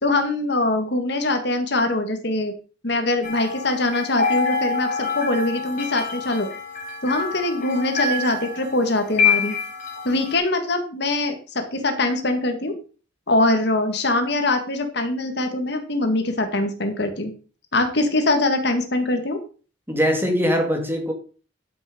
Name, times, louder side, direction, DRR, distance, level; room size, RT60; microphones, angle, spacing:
voice 1, 0.0-2.5 2.8-6.5 7.0-9.6 10.0-12.8 13.3-17.3 17.7-19.4, left 2 dB, 60° left, 2.0 m, -23 dB
sound 1, 3.2-10.4, left 5 dB, 45° left, 2.8 m, -26 dB
voice 2, 19.9-21.1, equal, 10° right, 2.1 m, -21 dB
11.5 x 6.2 x 5.1 m
head